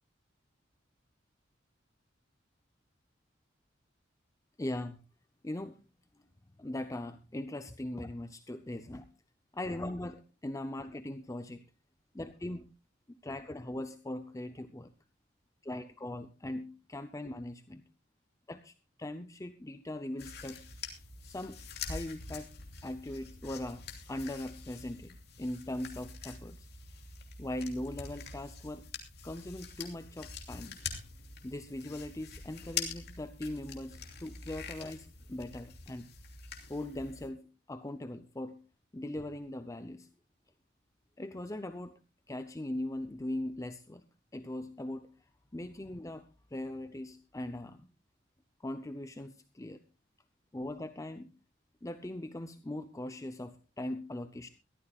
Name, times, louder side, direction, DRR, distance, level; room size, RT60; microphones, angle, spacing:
voice 1, 4.6-5.0 5.4-5.8 6.6-9.1 9.5-11.6 12.1-12.7 13.1-14.9 15.6-17.8 18.5-20.6 21.2-22.5 22.8-26.7 27.4-28.9 29.2-30.8 31.4-36.1 36.7-38.6 38.9-40.1 41.2-42.0 42.3-44.0 44.3-45.1 45.5-47.9 48.6-49.8 50.5-51.3 51.8-54.5, left 1 dB, 15° left, 9 dB, 0.6 m, -40 dB
sound 1, 20.2-37.3, left 5 dB, 60° left, 2.8 m, -45 dB
22.5 x 14.0 x 2.4 m, 0.31 s
head